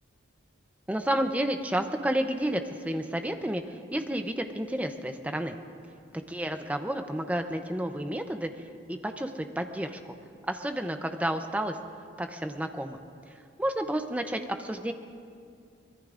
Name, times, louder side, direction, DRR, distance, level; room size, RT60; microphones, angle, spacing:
voice 1, 0.9-5.6 6.3-8.5 8.9-10.1 10.5-11.8 12.2-13.0 13.6-14.9, right 1 dB, 5° right, 6 dB, 0.6 m, -31 dB
24.5 x 21.0 x 2.5 m, 2.4 s
head